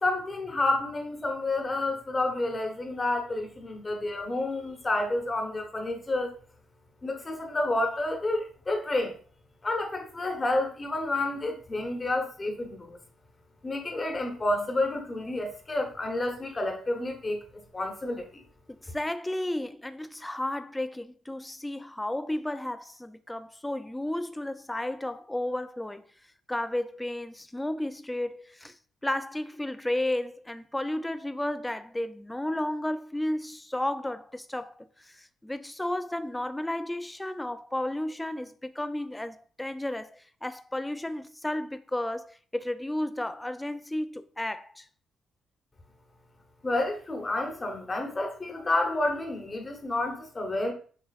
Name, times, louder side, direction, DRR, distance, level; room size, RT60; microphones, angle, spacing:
voice 1, 0.0-6.3 7.0-9.1 9.6-13.0 13.6-18.4 46.6-50.7, left 2 dB, 25° left, 1.0 m, -30 dB
voice 2, 18.8-26.1 26.5-28.8 29.0-44.8, left 1 dB, 10° left, 0.4 m, -33 dB
6.7 x 2.9 x 2.5 m
cardioid pair, 90°, 0 cm